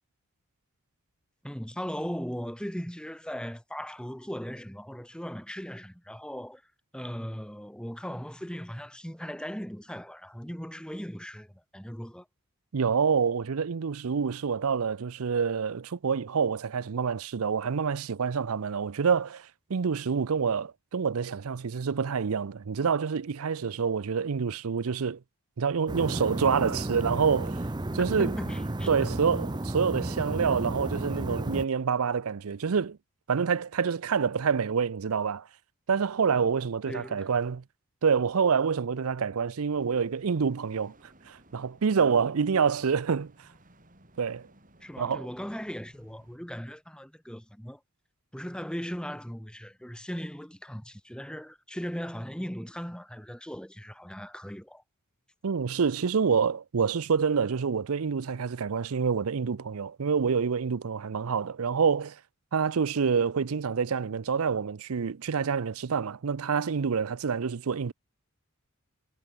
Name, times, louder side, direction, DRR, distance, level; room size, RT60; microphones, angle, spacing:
voice 1, 1.4-6.6 6.9-12.3 28.0-29.1 36.9-37.3 44.8-47.8 48.3-54.8, equal, 5° left, 2.2 m, -38 dB
voice 2, 12.7-25.2 25.6-27.6 27.9-28.3 28.9-33.0 33.3-35.5 35.9-37.6 38.0-40.9 41.3-43.3 44.2-44.5 45.0-45.3 55.4-62.2 62.5-67.9, right 6 dB, 75° right, 0.5 m, -27 dB
sound 1, 25.9-31.6, right 1 dB, 20° right, 0.6 m, -32 dB
sound 2, 39.7-46.4, right 1 dB, 35° right, 7.8 m, -59 dB
head